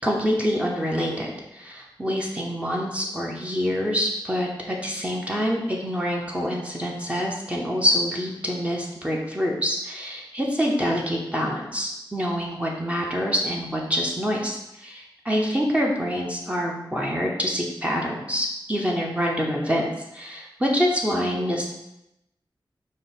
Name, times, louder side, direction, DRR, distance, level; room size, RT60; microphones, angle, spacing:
voice 1, 0.0-19.9 20.1-21.7, equal, 15° right, -2 dB, 0.7 m, -26 dB
5.2 x 2.0 x 4.0 m, 0.87 s
wide cardioid pair, 65°, 9 cm